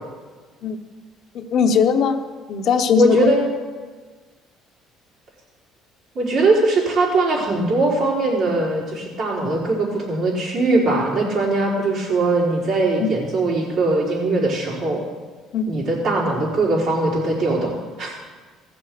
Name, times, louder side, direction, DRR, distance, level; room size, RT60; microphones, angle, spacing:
voice 1, 1.3-2.2 2.5-3.3 13.0-13.1 15.5-15.7, left 6 dB, 60° left, 6 dB, 0.9 m, -19 dB
voice 2, 3.0-3.5 6.1-15.0 15.7-18.1, right 2 dB, 60° right, -5 dB, 4.4 m, -20 dB
16.0 x 6.9 x 6.8 m, 1.4 s
cardioid pair, 105°, 0 cm